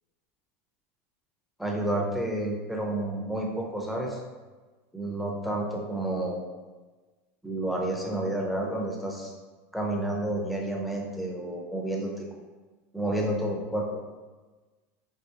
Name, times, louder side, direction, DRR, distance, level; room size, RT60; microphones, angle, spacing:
voice 1, 1.6-4.2 4.9-6.4 7.4-9.3 9.7-12.3 12.9-14.0, right 1 dB, ahead, -1 dB, 0.6 m, -30 dB
4.5 x 2.9 x 2.8 m, 1.3 s
supercardioid pair, 135°, 8 cm